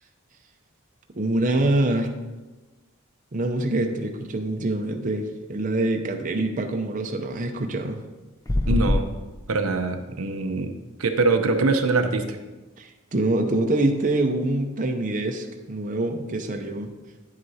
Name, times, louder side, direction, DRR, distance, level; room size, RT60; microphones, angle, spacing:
voice 1, 1.1-2.1 3.3-8.0 12.8-16.9, right 2 dB, 40° right, 4 dB, 0.6 m, -25 dB
sound 1, 8.5-9.1, left 1 dB, 15° left, 0.5 m, -22 dB
voice 2, 8.7-9.1 9.5-10.7 11.0-12.4, right 3 dB, 85° right, 6 dB, 0.7 m, -23 dB
9.7 x 7.8 x 2.8 m, 1.2 s
head